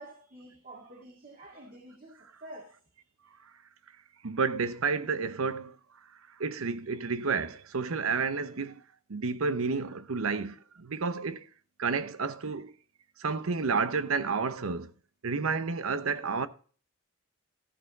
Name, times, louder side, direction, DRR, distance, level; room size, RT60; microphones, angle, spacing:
voice 1, 0.0-2.7, right 1 dB, 40° right, 1.9 m, -48 dB
voice 2, 4.2-5.8 6.4-8.8 9.1-11.5 11.8-12.7 13.2-14.9 15.2-16.5, right 4 dB, 75° right, 0.8 m, -30 dB
14.0 x 6.6 x 4.0 m
head